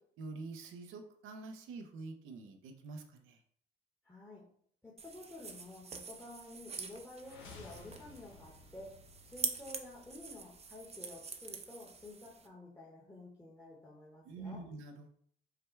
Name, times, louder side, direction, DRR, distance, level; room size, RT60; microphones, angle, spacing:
voice 1, 0.2-3.4 14.2-15.1, right 3 dB, 90° right, 5 dB, 0.7 m, -46 dB
voice 2, 4.0-4.4 4.8-8.9 9.2-14.6, left 2 dB, 10° left, -4 dB, 1.1 m, -51 dB
sound 1, 5.0-12.5, right 5 dB, 30° right, 0.6 m, -45 dB
sound 2, 7.1-11.1, left 3 dB, 85° left, 1.0 m, -56 dB
5.0 x 2.2 x 4.4 m, 0.62 s
cardioid pair, 90°, 20 cm